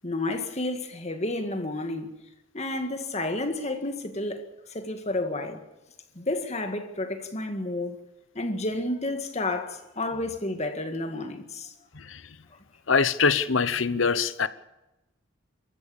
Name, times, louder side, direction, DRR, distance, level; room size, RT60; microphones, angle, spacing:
voice 1, 0.0-2.1 2.5-5.6 6.2-8.0 8.4-11.7, left 2 dB, 35° left, 1.9 m, -31 dB
voice 2, 11.9-12.4 12.9-14.5, left 5 dB, 70° left, 1.0 m, -24 dB
26.0 x 14.5 x 7.1 m
head